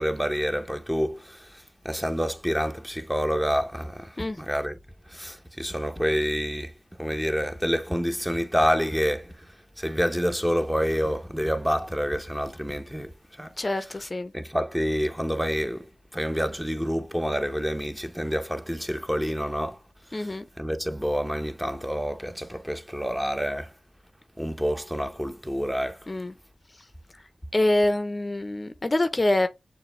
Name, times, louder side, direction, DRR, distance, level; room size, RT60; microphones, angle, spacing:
voice 1, 0.0-4.8 5.1-9.3 9.8-13.5 14.3-19.8 20.1-23.7 24.4-26.1, equal, 5° right, 0.8 m, -28 dB
voice 2, 13.6-14.3 20.1-20.5 26.1-26.3 27.5-29.5, left 1 dB, 35° left, 0.6 m, -25 dB
6.6 x 2.6 x 3.0 m
cardioid pair, 55°, 0 cm